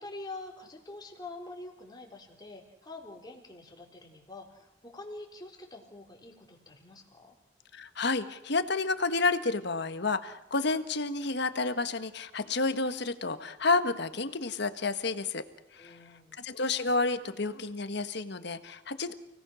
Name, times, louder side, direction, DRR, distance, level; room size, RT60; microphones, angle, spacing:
voice 1, 0.0-7.3 15.8-16.4, left 2 dB, 25° left, 1 dB, 3.9 m, -46 dB
voice 2, 7.7-15.4 15.7-16.0 16.4-19.1, left 3 dB, 65° left, 10 dB, 1.4 m, -30 dB
29.5 x 18.5 x 6.3 m, 0.86 s
head